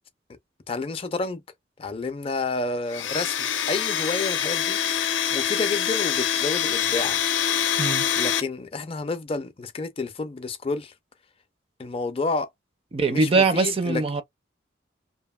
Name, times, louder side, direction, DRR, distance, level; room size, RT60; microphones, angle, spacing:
voice 1, 0.7-1.4 1.8-5.0 5.3-7.2 8.2-10.9 11.8-12.5 13.1-14.0, left 3 dB, 30° left, 0.4 m, -30 dB
Domestic sounds home sounds, 2.9-8.4, left 9 dB, 80° left, 0.5 m, -25 dB
voice 2, 12.9-14.2, right 3 dB, 30° right, 0.4 m, -22 dB
2.8 x 2.6 x 2.2 m
head